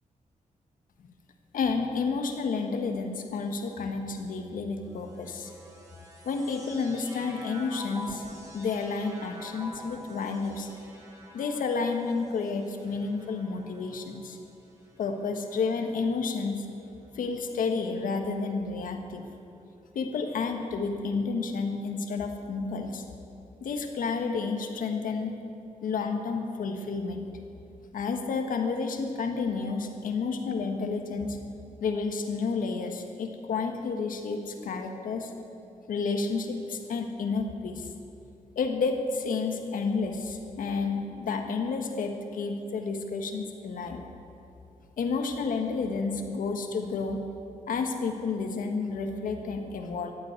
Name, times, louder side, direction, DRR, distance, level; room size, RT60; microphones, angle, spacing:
voice 1, 1.5-5.5 6.2-8.2 8.5-10.7 11.3-14.4 15.0-16.6 17.1-19.3 19.9-23.0 23.6-25.3 25.8-27.4 27.9-31.4 31.8-35.3 35.9-37.9 38.5-44.0 45.0-47.2 47.7-50.1, left 4 dB, 90° left, 5 dB, 1.5 m, -30 dB
sound 1, 4.9-16.4 17.1-17.9, right 1 dB, 25° right, 2.6 m, -48 dB
14.5 x 8.5 x 9.6 m, 2.7 s
wide cardioid pair, 120°, 14 cm